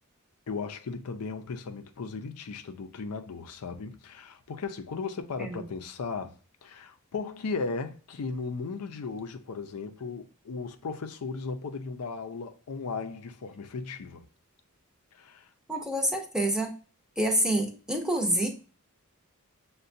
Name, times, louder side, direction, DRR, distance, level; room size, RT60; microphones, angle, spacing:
voice 1, 0.5-6.3 6.6-14.2 15.1-15.5, left 4 dB, 85° left, 0.5 m, -36 dB
voice 2, 15.7-16.7 17.2-18.5, right 1 dB, 5° right, 0.6 m, -27 dB
6.6 x 2.2 x 2.6 m
head